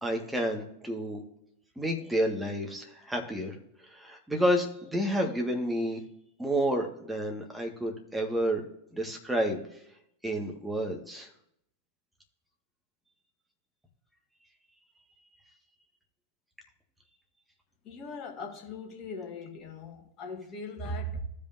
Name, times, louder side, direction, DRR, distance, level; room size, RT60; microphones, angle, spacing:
voice 1, 0.0-1.2 1.8-3.5 3.9-6.0 6.4-8.6 8.9-9.6 10.2-11.3, equal, 5° right, 1.6 m, -30 dB
voice 2, 17.8-21.2, equal, 35° left, 1.8 m, -39 dB
15.0 x 5.3 x 2.6 m
figure-of-eight pair, 90°, 0 cm